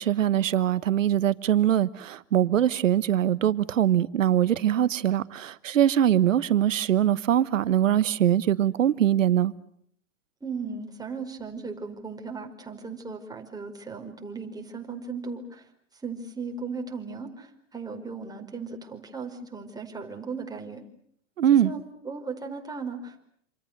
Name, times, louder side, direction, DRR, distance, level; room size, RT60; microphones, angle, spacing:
voice 1, 0.0-9.5 21.4-21.7, right 11 dB, 80° right, 1.2 m, -22 dB
voice 2, 10.4-15.6 16.0-20.8 21.6-23.2, right 4 dB, 10° right, 4.9 m, -37 dB
27.5 x 27.5 x 6.7 m
hypercardioid pair, 105°, 38 cm